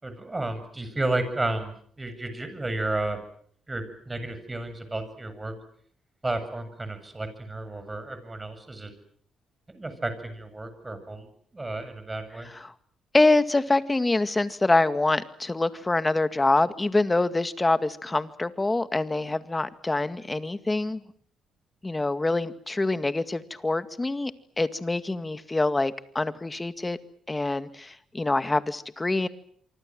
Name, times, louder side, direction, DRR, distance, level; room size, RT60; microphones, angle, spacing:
voice 1, 0.0-3.2 3.7-5.5 6.2-8.9 9.7-11.3 11.5-12.5, right 2 dB, 20° right, 10 dB, 7.6 m, -32 dB
voice 2, 13.1-21.0 21.8-24.3 24.6-27.0 27.3-29.3, left 2 dB, 20° left, 11 dB, 2.0 m, -25 dB
27.0 x 25.0 x 7.7 m, 0.63 s
cardioid pair, 90°, 0 cm